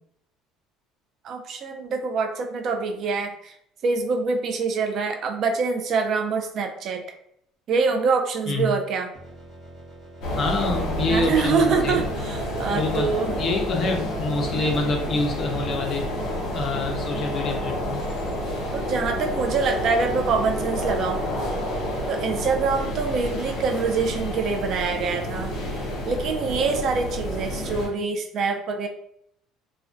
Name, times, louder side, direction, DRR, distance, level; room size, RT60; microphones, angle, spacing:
voice 1, 1.2-3.5 3.8-7.0 7.7-9.1 11.1-13.3 18.7-21.3 22.1-25.6 26.1-28.9, right 4 dB, 45° right, 4 dB, 0.3 m, -25 dB
sound 1, 9.1-18.5, right 1 dB, 15° right, 0.8 m, -45 dB
sound 2, 10.2-27.9, equal, 65° left, 0.8 m, -29 dB
voice 2, 10.4-12.0 12.7-13.1 13.4-16.1 16.5-18.0, left 2 dB, 40° left, 3 dB, 0.5 m, -26 dB
sound 3, 18.7-22.6, left 3 dB, 75° right, 0.7 m, -39 dB
2.4 x 2.1 x 2.5 m, 0.71 s
cardioid pair, 135°, 0 cm